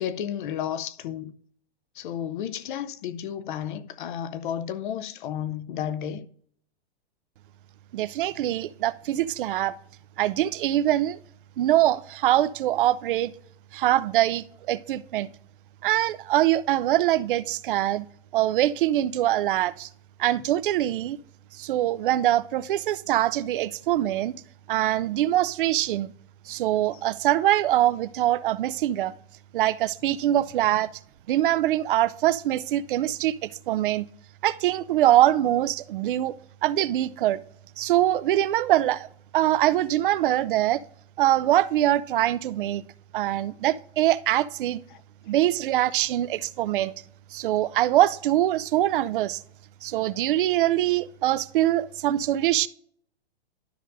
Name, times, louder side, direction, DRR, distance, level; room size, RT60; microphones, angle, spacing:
voice 1, 0.0-1.3 2.0-6.3 44.9-45.0, left 9 dB, 50° left, 0.6 m, -32 dB
voice 2, 7.9-9.7 10.2-11.2 11.6-13.3 13.7-15.3 15.8-18.0 18.3-19.9 20.2-21.2 21.6-24.4 24.7-26.1 26.5-29.1 29.5-30.9 31.3-34.1 34.4-36.3 36.6-37.4 37.8-39.1 39.3-40.8 41.2-42.8 43.1-44.8 45.3-46.9 47.3-49.4 49.8-52.7, right 13 dB, 55° right, 0.4 m, -23 dB
12.0 x 5.2 x 2.6 m
hypercardioid pair, 140°, 32 cm